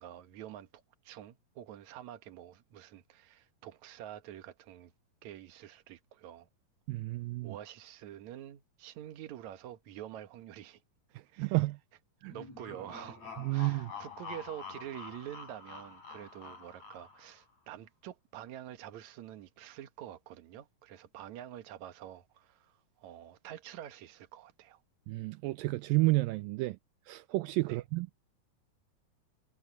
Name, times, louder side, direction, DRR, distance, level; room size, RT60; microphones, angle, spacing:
voice 1, 0.0-4.9 5.2-6.5 7.4-10.8 11.3-11.6 12.3-24.8 27.6-27.8, right 11 dB, 60° right, 2.4 m, -47 dB
voice 2, 6.9-7.5 11.4-11.8 12.2-12.3 13.4-13.9 25.1-26.8 27.1-28.1, right 20 dB, 80° right, 2.2 m, -30 dB
sound 1, 12.3-17.4, left 5 dB, 50° left, 8.8 m, -47 dB
omnidirectional pair, 4.1 m